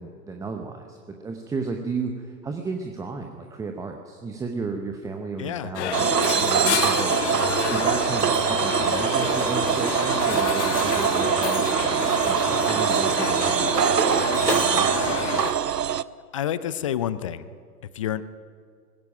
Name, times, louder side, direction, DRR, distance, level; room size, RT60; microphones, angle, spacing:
voice 1, 0.0-7.1 7.6-13.9 14.5-15.2, right 4 dB, 5° right, 4 dB, 0.8 m, -33 dB
voice 2, 5.4-5.7 16.3-17.4 17.9-18.2, left 10 dB, 20° left, 16 dB, 0.4 m, -28 dB
sound 1, 5.7-15.5, left 9 dB, 45° left, 1.5 m, -29 dB
sound 2, 5.9-16.0, right 9 dB, 80° right, 0.7 m, -23 dB
20.0 x 16.0 x 9.0 m, 2.1 s
figure-of-eight pair, 110°, 48 cm